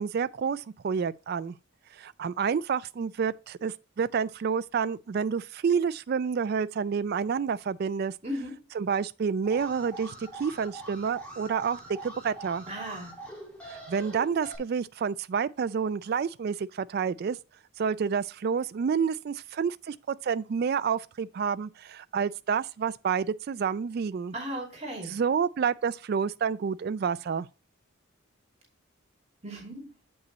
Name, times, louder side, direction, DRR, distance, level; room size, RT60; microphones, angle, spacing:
voice 1, 0.0-1.6 2.0-8.1 8.7-12.6 13.7-17.4 17.8-24.3 25.0-27.5, right 6 dB, 50° right, 0.3 m, -29 dB
voice 2, 8.2-8.5 12.7-13.1 24.3-25.1 29.4-29.9, equal, 30° right, 2.7 m, -36 dB
Alarm, 9.4-14.6, right 2 dB, 5° left, 2.3 m, -44 dB
8.0 x 5.5 x 4.0 m
head